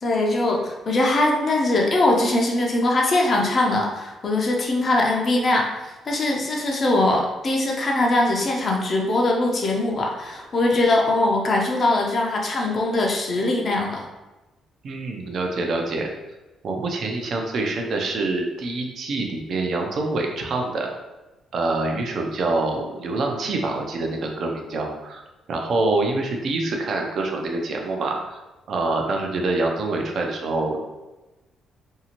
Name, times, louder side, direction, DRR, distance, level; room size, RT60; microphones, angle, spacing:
voice 1, 0.0-14.0, left 2 dB, 45° left, 0 dB, 0.6 m, -21 dB
voice 2, 14.8-16.1 16.6-20.9 21.5-25.2 25.5-28.4 28.7-30.9, right 2 dB, 60° right, 2 dB, 0.5 m, -25 dB
2.7 x 2.4 x 2.9 m, 1.1 s
cardioid pair, 90°, 0 cm